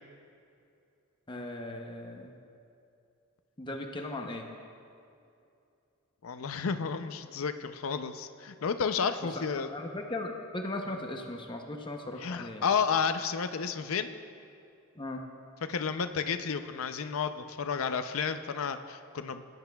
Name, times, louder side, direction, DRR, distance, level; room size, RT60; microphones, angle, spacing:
voice 1, 1.3-2.3 3.6-4.5 9.5-12.7 15.0-15.2, left 2 dB, 20° left, 2 dB, 0.7 m, -38 dB
voice 2, 6.2-9.7 10.9-11.0 12.2-14.1 15.7-19.4, left 6 dB, 70° left, 9 dB, 0.5 m, -31 dB
18.5 x 10.5 x 2.3 m, 2.5 s
head